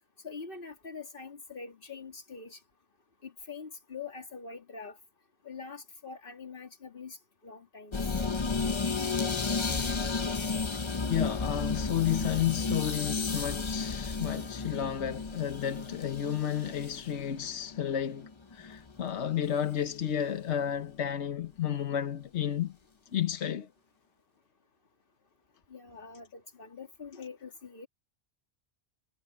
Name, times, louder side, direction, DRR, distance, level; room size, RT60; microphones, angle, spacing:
voice 1, 0.2-2.6 3.2-5.0 5.4-7.2 7.4-8.0 25.7-27.9, left 5 dB, 50° left, 2.4 m, -44 dB
sound 1, 7.9-19.0 19.3-19.6, left 4 dB, 30° left, 0.7 m, -33 dB
voice 2, 11.1-22.7 23.1-23.7, left 9 dB, 80° left, 1.3 m, -32 dB
omnidirectional pair, 1.1 m